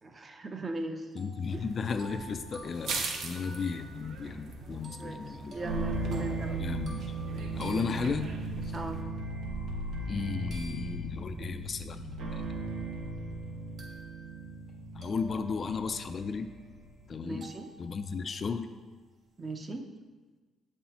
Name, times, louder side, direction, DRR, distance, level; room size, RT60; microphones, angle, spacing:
voice 1, 0.0-1.1 1.5-1.7 5.0-6.6 8.7-9.1 17.2-17.7 19.4-19.9, right 2 dB, 30° right, 6 dB, 0.6 m, -38 dB
voice 2, 1.2-5.5 6.6-8.3 10.1-12.4 15.0-16.5 17.1-17.5 17.8-18.7, left 5 dB, 40° left, 9 dB, 0.4 m, -34 dB
sound 1, 1.2-8.7 10.5-11.4 12.1-12.2 13.8-14.7 15.0-16.8 17.4-18.7, right 2 dB, 50° right, 1.5 m, -52 dB
sound 2, 1.5-9.0, right 4 dB, 65° right, 0.8 m, -42 dB
sound 3, 5.6-17.0, right 2 dB, 85° right, 1.1 m, -37 dB
8.2 x 5.5 x 2.9 m, 1.3 s
cardioid pair, 120°, 0 cm